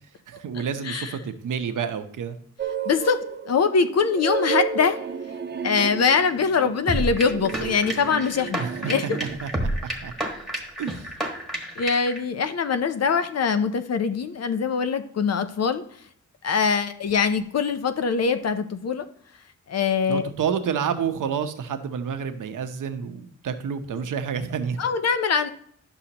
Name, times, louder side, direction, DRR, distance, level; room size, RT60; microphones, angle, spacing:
voice 1, 0.3-2.4 8.6-9.0 9.4-9.5 9.8-10.1 10.8-11.1 20.1-24.8, right 7 dB, 75° right, 8 dB, 0.8 m, -29 dB
sound 1, 2.6-9.4, right 6 dB, 35° right, 0.5 m, -32 dB
voice 2, 2.9-5.0 5.6-9.2 11.8-15.8 16.4-19.1 19.7-20.2 24.8-25.5, left 5 dB, 55° left, 10 dB, 0.6 m, -23 dB
sound 2, 6.9-12.2, right 1 dB, ahead, 1.4 m, -30 dB
11.0 x 6.3 x 2.9 m, 0.63 s
wide cardioid pair, 130°, 31 cm